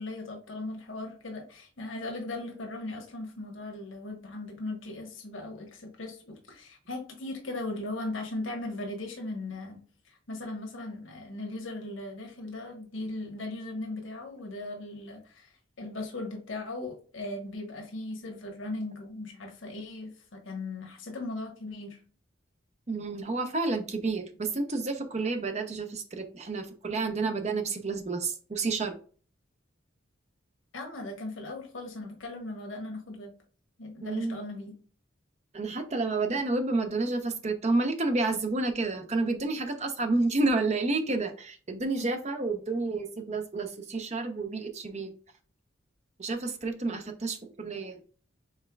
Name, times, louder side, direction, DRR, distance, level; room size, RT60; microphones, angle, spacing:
voice 1, 0.0-9.8 10.0-15.5 15.8-22.0 30.7-33.3 33.8-34.7 42.0-42.1, left 2 dB, 85° left, 1 dB, 1.2 m, -38 dB
voice 2, 22.9-29.0 34.0-34.4 35.5-45.1 46.2-48.0, right 3 dB, 35° right, 6 dB, 0.7 m, -30 dB
5.5 x 3.6 x 2.3 m, 0.42 s
head